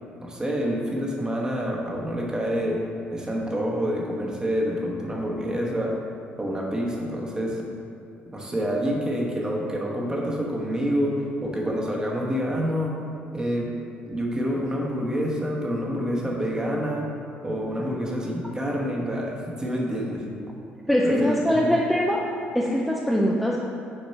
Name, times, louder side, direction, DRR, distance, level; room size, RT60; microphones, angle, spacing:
voice 1, 0.2-2.8 3.1-6.0 6.4-7.6 8.3-12.9 13.3-13.7 14.1-17.1 17.4-20.3 21.0-21.8, equal, 20° right, -2 dB, 1.2 m, -27 dB
voice 2, 20.9-22.2 22.5-23.6, equal, ahead, -3 dB, 0.6 m, -22 dB
6.5 x 4.4 x 4.3 m, 2.6 s
cardioid pair, 85°, 4 cm